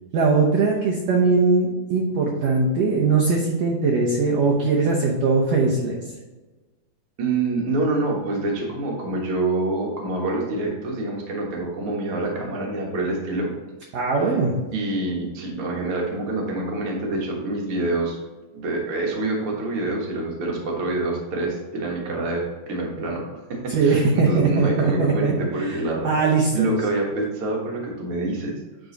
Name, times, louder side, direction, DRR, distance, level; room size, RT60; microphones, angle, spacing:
voice 1, 0.1-6.0 13.9-14.5 23.7-25.3 25.6-26.7, right 4 dB, 65° right, -2 dB, 1.8 m, -20 dB
voice 2, 7.2-13.5 14.7-18.2 18.5-26.1 26.5-28.5, right 2 dB, 50° right, -1 dB, 2.0 m, -26 dB
9.7 x 3.9 x 3.9 m, 1.2 s
omnidirectional pair, 3.8 m